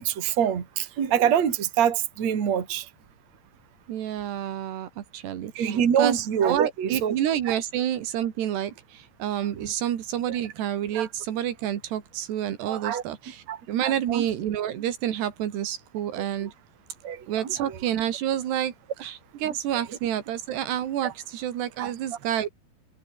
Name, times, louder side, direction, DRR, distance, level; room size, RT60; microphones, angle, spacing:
voice 1, 0.0-2.9 5.6-7.2 7.5-7.6 9.6-9.7 10.3-10.4 10.9-11.1 12.7-13.0 13.5-14.3 16.2-16.5 17.0-17.8 21.0-21.1 21.8-21.9, right 9 dB, 45° right, 3.7 m, -26 dB
voice 2, 3.9-6.2 6.4-16.5 17.3-18.7 19.0-22.5, right 11 dB, 90° right, 4.2 m, -29 dB
omnidirectional pair, 4.6 m